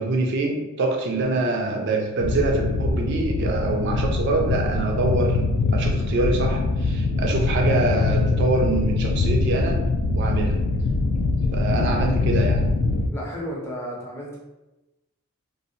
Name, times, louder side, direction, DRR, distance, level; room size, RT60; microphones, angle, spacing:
voice 1, 0.0-5.4 5.7-9.8 10.1-10.6 11.5-12.7, right 2 dB, 50° right, 1 dB, 0.3 m, -25 dB
sound 1, 2.2-13.1, left 3 dB, 85° left, 0.3 m, -23 dB
voice 2, 13.1-14.4, equal, 10° left, -4 dB, 0.5 m, -33 dB
2.6 x 2.0 x 2.7 m, 1.0 s
head